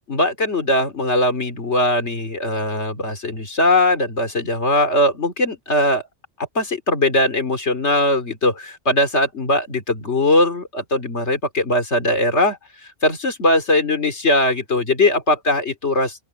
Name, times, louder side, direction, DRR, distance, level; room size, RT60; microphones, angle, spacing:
voice 1, 0.1-6.0 6.5-12.6 13.0-16.2, left 1 dB, 75° left, 3.2 m, -20 dB
open air
omnidirectional pair, 1.2 m